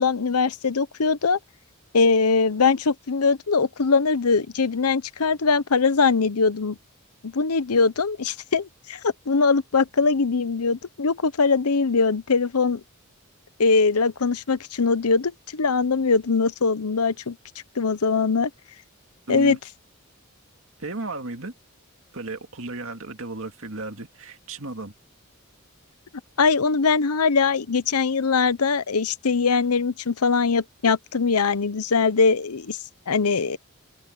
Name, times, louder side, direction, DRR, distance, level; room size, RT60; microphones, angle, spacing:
voice 1, 0.0-1.4 1.9-6.8 7.2-12.8 13.6-17.4 17.8-18.5 19.3-19.6 26.4-32.8 33.1-33.6, left 4 dB, 90° left, 0.8 m, -21 dB
voice 2, 19.3-19.6 20.8-21.5 22.1-24.9, right 2 dB, 65° right, 2.4 m, -34 dB
head